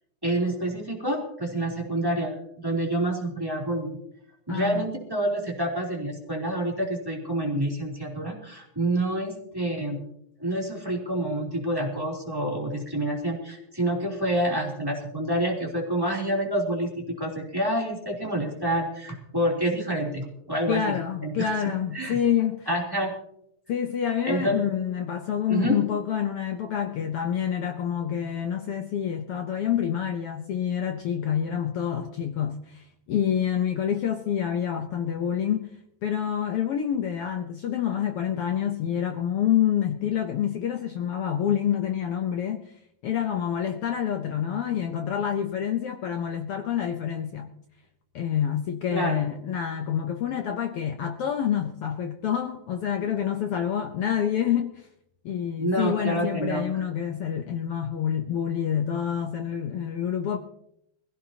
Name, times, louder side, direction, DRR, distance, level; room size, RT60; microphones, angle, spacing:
voice 1, 0.2-4.0 4.5-10.1 10.4-21.0 21.2-22.2 22.7-23.1 24.2-24.6 25.5-25.8 48.9-49.2 55.6-56.6, right 1 dB, 10° right, 2.9 m, -28 dB
voice 2, 4.5-4.9 20.7-22.7 23.7-35.7 36.0-42.7 43.0-47.5 48.1-54.9 55.2-60.4, left 9 dB, 70° left, 1.4 m, -27 dB
22.0 x 16.0 x 2.9 m
omnidirectional pair, 3.3 m